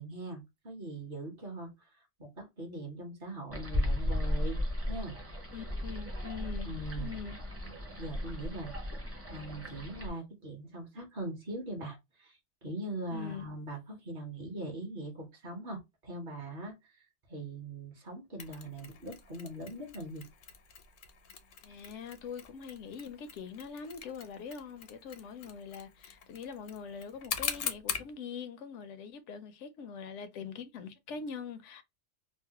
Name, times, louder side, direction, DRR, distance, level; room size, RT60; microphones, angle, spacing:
voice 1, 0.0-1.9 2.2-4.6 4.9-5.2 6.6-7.3 7.6-7.7 8.0-17.0 17.3-20.2, right 1 dB, 50° right, 1.1 m, -41 dB
sound 1, 3.5-10.1, left 1 dB, 15° right, 0.6 m, -35 dB
voice 2, 5.5-6.7 7.0-7.4 13.1-13.5 21.6-31.8, left 6 dB, 85° left, 0.9 m, -43 dB
Mechanisms, 18.4-28.1, left 7 dB, 60° left, 0.6 m, -42 dB
3.2 x 2.1 x 2.8 m
omnidirectional pair, 1.2 m